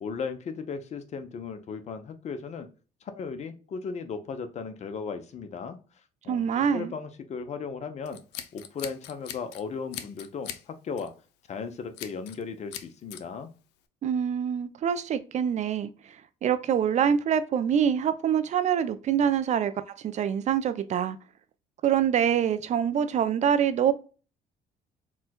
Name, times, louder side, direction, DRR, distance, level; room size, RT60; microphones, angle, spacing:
voice 1, 0.0-2.7 3.0-5.8 6.2-8.2 8.5-11.1 11.5-13.5, left 5 dB, 40° left, 9 dB, 0.6 m, -36 dB
voice 2, 6.3-6.9 14.0-16.1 16.4-19.7 20.0-21.2 21.8-23.9, right 8 dB, 45° right, 12 dB, 0.4 m, -25 dB
Scissors, 8.1-9.6 9.9-10.6 11.0-11.2 12.0-12.4 12.7-13.2, left 11 dB, 85° left, 0.4 m, -40 dB
4.3 x 2.2 x 2.2 m, 0.35 s
cardioid pair, 110°, 17 cm